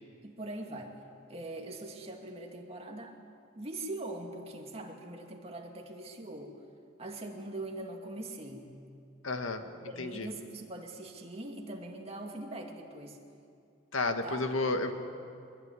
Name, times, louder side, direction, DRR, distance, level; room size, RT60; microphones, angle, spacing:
voice 1, 0.2-0.9 1.3-3.2 3.6-6.5 7.0-8.7 9.8-13.2 14.2-14.4, right 2 dB, 30° right, 2 dB, 2.4 m, -42 dB
voice 2, 9.2-9.6 10.0-10.3 13.9-14.9, left 2 dB, 75° left, 6 dB, 1.8 m, -31 dB
24.5 x 21.0 x 9.8 m, 2.4 s
head